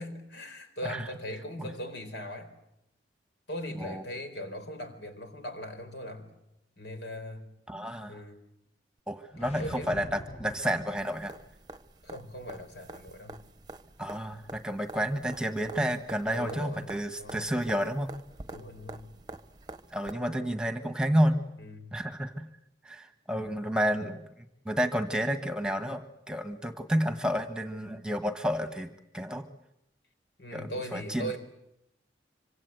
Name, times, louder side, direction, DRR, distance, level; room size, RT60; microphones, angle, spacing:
voice 1, 0.0-2.5 3.5-6.3 6.8-7.5 8.1-8.4 9.4-9.9 12.0-13.4 16.3-16.9 17.2-17.4 18.5-19.1 20.0-20.2 21.6-21.9 30.4-31.4, equal, 80° left, 7 dB, 4.4 m, -40 dB
voice 2, 3.7-4.0 7.7-8.2 9.1-11.3 14.0-18.1 19.9-21.4 21.9-22.5 22.8-29.4 30.5-31.4, equal, 5° right, 7 dB, 1.3 m, -30 dB
sound 1, 9.3-11.5, left 1 dB, 35° left, 1.1 m, -44 dB
sound 2, 11.0-20.1 22.1-22.2, right 2 dB, 25° right, 0.9 m, -47 dB
26.5 x 25.0 x 8.0 m, 0.83 s
head